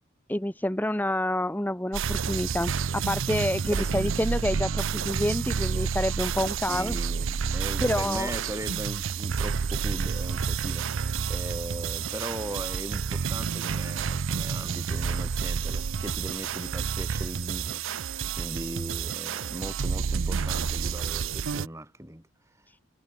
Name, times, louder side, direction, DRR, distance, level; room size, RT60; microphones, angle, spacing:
voice 1, 0.3-7.0 7.8-8.3, left 1 dB, 10° left, 1.0 m, -28 dB
sound 1, 1.9-21.7, right 6 dB, 75° right, 0.6 m, -29 dB
voice 2, 3.6-4.1 6.5-22.3, right 1 dB, 15° right, 2.8 m, -39 dB
head